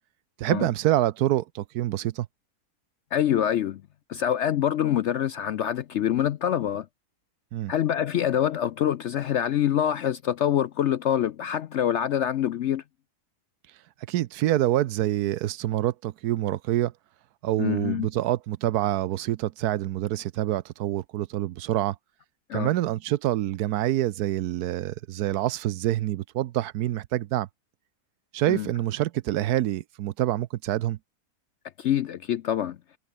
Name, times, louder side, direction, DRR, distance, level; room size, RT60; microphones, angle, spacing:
voice 1, 0.4-2.3 7.5-7.7 14.1-16.9 17.4-22.0 22.5-27.5 28.3-31.0, right 14 dB, 80° right, 1.2 m, -26 dB
voice 2, 3.1-3.8 4.1-6.9 7.7-12.8 17.6-18.1 22.5-22.7 28.5-28.7 31.8-32.8, left 10 dB, 65° left, 0.7 m, -25 dB
omnidirectional pair, 1.7 m